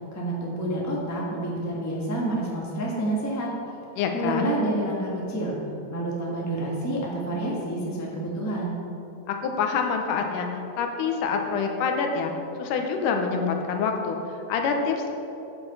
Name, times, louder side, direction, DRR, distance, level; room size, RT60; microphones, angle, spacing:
voice 1, 0.1-3.5 4.1-5.5 5.9-8.8, right 1 dB, 20° left, -4 dB, 0.4 m, -28 dB
voice 2, 4.0-4.5 9.3-10.5 10.8-12.3 12.6-14.2 14.5-15.1, left 5 dB, 85° left, 3 dB, 2.4 m, -26 dB
8.9 x 7.0 x 5.5 m, 2.9 s
omnidirectional pair, 3.6 m